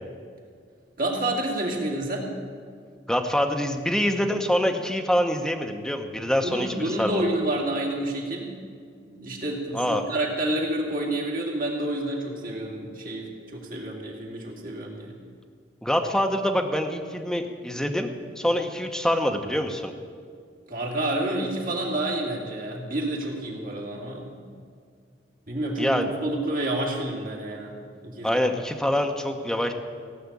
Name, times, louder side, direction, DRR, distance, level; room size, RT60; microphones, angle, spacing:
voice 1, 1.0-2.3 6.4-8.5 9.1-15.2 20.7-24.5 25.5-27.7 28.0-28.4, right 1 dB, 50° right, -1 dB, 2.5 m, -29 dB
voice 2, 3.1-7.2 9.7-10.0 15.8-18.1 18.4-19.9 25.8-26.1 28.2-29.7, equal, 5° left, 4 dB, 0.9 m, -25 dB
17.0 x 5.9 x 8.4 m, 2.1 s
head